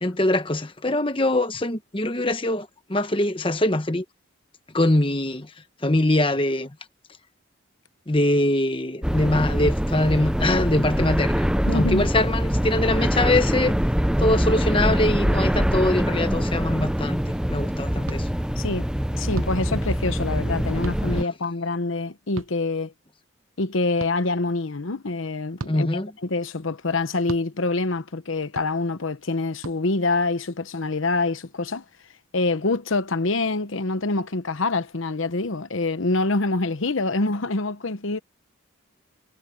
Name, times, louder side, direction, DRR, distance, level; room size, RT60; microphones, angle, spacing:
voice 1, 0.0-4.0 4.7-5.5 5.8-6.7 8.1-11.5 11.7-13.8 14.2-18.3 25.7-26.1, left 1 dB, 25° left, 1.1 m, -23 dB
sound 1, 9.0-21.2, equal, 5° right, 0.7 m, -24 dB
voice 2, 11.7-12.1 18.6-18.8 19.1-22.9 23.6-31.8 32.3-38.2, left 3 dB, 70° left, 1.0 m, -26 dB
sound 2, 18.0-18.2 19.3-19.6 20.8-21.0 22.4-22.5 24.0-24.1 25.6-25.8 27.3-27.4 28.5-28.7 29.6-29.8, right 3 dB, 80° right, 0.9 m, -34 dB
head